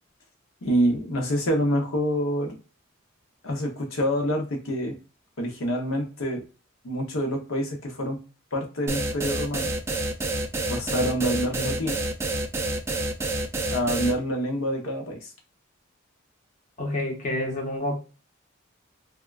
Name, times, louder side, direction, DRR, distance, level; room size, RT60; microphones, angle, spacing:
voice 1, 0.6-2.6 3.4-4.9 5.4-6.4 6.8-8.2 8.5-9.7 10.7-12.0 13.7-15.3, equal, 85° left, 2 dB, 0.8 m, -26 dB
sound 1, 8.9-14.1, right 2 dB, 15° right, 0.3 m, -28 dB
voice 2, 16.8-18.0, left 1 dB, 40° left, 1 dB, 0.8 m, -28 dB
3.5 x 2.2 x 2.3 m, 0.34 s
head